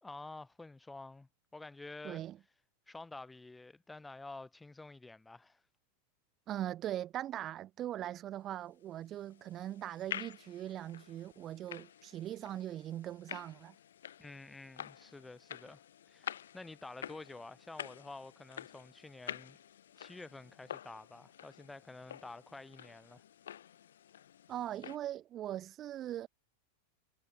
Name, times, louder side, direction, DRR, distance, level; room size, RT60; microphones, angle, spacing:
voice 1, 0.0-2.2 2.9-5.6 14.2-19.6 20.0-23.2, left 2 dB, 10° left, 3.7 m, -50 dB
voice 2, 2.0-2.4 6.5-13.8 24.5-26.3, right 12 dB, 30° right, 1.7 m, -40 dB
sound 1, 8.9-25.0, left 10 dB, 65° left, 5.0 m, -49 dB
figure-of-eight pair, 90°, 0 cm